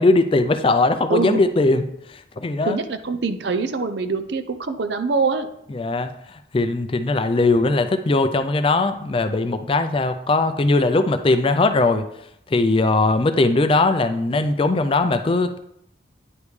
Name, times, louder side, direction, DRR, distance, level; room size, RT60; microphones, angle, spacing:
voice 1, 0.0-2.8 5.7-6.1 6.5-12.0 12.5-15.6, left 2 dB, 30° left, 9 dB, 0.4 m, -19 dB
voice 2, 1.1-1.5 2.6-5.5, right 4 dB, 60° right, 10 dB, 0.5 m, -24 dB
9.6 x 5.1 x 3.2 m, 0.75 s
head